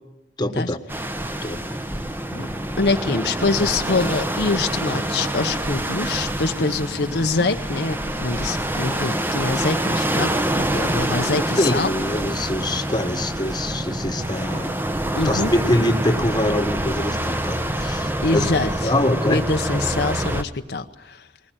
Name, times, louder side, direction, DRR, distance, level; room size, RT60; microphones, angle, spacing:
voice 1, 0.4-0.8 1.4-1.6 11.6-14.8 15.2-18.5 18.8-19.4, left 1 dB, 25° left, 7 dB, 1.4 m, -24 dB
sound 1, 0.9-20.4, right 1 dB, 10° right, 1.0 m, -26 dB
voice 2, 2.3-11.9 15.2-15.5 18.2-18.9 19.3-21.3, left 3 dB, 60° left, 6 dB, 0.9 m, -24 dB
20.0 x 19.5 x 9.0 m, 0.90 s
head